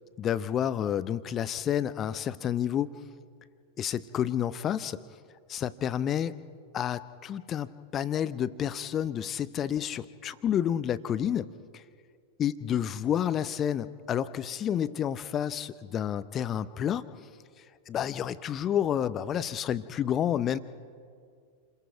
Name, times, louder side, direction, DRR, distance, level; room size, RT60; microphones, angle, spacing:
voice 1, 0.2-2.9 3.8-5.0 5.5-6.3 6.7-11.8 12.4-17.0 17.9-20.6, left 9 dB, 30° left, 15 dB, 0.7 m, -30 dB
29.0 x 21.5 x 4.7 m, 2.2 s
figure-of-eight pair, 90°, 0 cm